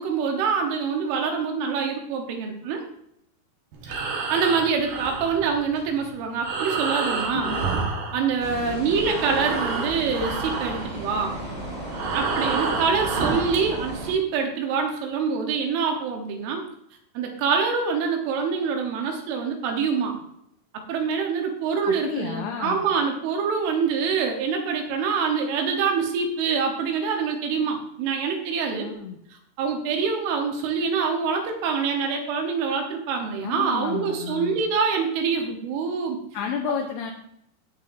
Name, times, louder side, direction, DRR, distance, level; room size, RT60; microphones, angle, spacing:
voice 1, 0.0-2.8 4.3-7.5 8.1-11.4 12.1-16.6 17.2-20.2 20.9-28.9 29.6-36.2, right 5 dB, 80° right, 3 dB, 3.7 m, -25 dB
Breathing, 3.7-8.7 9.0-13.7, right 4 dB, 60° right, 2.5 m, -29 dB
voice 2, 7.3-7.7 21.9-22.9 28.8-29.2 33.4-34.6 36.3-37.1, left 7 dB, 75° left, 1 dB, 2.5 m, -31 dB
sound 1, 8.4-14.1, right 1 dB, 15° right, 2.2 m, -35 dB
16.0 x 6.7 x 2.7 m, 0.75 s
omnidirectional pair, 5.6 m